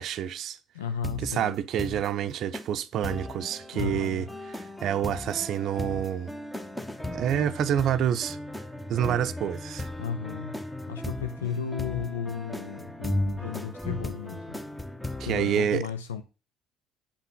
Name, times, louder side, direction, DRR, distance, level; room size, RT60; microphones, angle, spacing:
voice 1, 0.0-0.6 1.2-4.3 4.6-6.3 7.1-8.4 8.9-9.9 15.3-15.8, right 10 dB, 50° right, 0.6 m, -28 dB
voice 2, 0.7-1.6 3.7-4.3 10.0-10.6 10.9-14.6 15.2-16.2, left 7 dB, 80° left, 0.5 m, -34 dB
sound 1, 1.0-1.3 1.8-2.1 2.5-2.7 3.0-15.7, left 1 dB, 5° left, 1.1 m, -36 dB
8.4 x 5.7 x 3.8 m
figure-of-eight pair, 55°, 0 cm